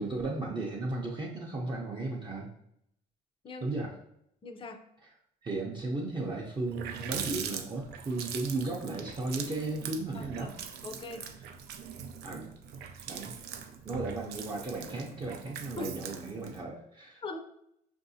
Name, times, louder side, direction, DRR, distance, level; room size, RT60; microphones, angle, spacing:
voice 1, 0.0-2.5 3.6-3.9 5.4-10.5 12.2-12.5 13.1-13.3 13.8-17.2, right 2 dB, 25° right, -2 dB, 0.6 m, -35 dB
voice 2, 4.4-4.8 10.1-10.5 10.8-11.3 15.8-15.9 17.2-17.4, left 3 dB, 30° left, 6 dB, 0.5 m, -40 dB
Water tap faucet, 6.2-6.3 6.5-16.6, right 7 dB, 75° right, 0.4 m, -42 dB
5.4 x 2.6 x 2.7 m, 0.75 s
cardioid pair, 110°, 17 cm